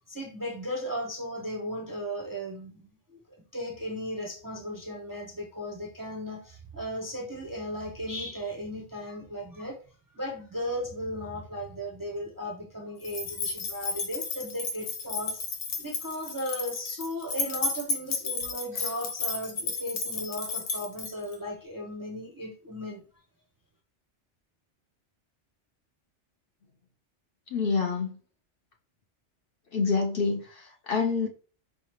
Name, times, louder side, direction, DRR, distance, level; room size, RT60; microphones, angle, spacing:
voice 1, 0.1-3.2 3.5-9.8 10.1-15.4 15.8-23.0, equal, 25° right, 0 dB, 0.5 m, -36 dB
sound 1, 13.0-21.4, left 4 dB, 85° left, 1.1 m, -33 dB
voice 2, 27.5-28.2 29.7-31.3, left 4 dB, 55° left, 3 dB, 0.8 m, -27 dB
4.8 x 3.2 x 2.9 m, 0.39 s
omnidirectional pair, 1.2 m